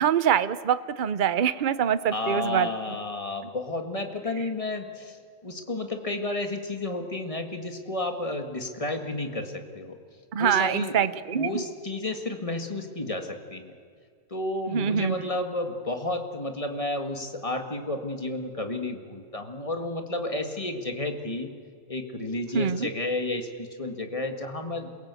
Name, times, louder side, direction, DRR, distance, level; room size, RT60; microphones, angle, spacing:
voice 1, 0.0-2.7 3.4-3.5 10.3-11.6 14.7-15.1 22.5-22.9, right 8 dB, 45° right, 14 dB, 0.8 m, -24 dB
voice 2, 2.1-10.0 10.4-11.1 11.3-13.7 14.3-21.5 21.9-24.9, left 2 dB, 25° left, 5 dB, 1.9 m, -31 dB
28.0 x 17.5 x 8.3 m, 2.1 s
omnidirectional pair, 1.3 m